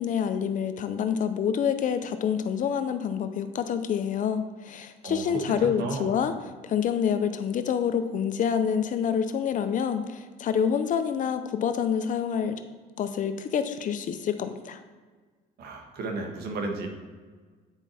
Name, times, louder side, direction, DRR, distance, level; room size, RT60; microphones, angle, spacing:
voice 1, 0.0-6.3 6.6-12.6 13.0-14.8, left 7 dB, 50° left, 9 dB, 0.6 m, -27 dB
voice 2, 5.6-6.1 15.6-16.9, right 3 dB, 70° right, 3 dB, 1.4 m, -33 dB
9.0 x 4.6 x 4.2 m, 1.5 s
cardioid pair, 110°, 17 cm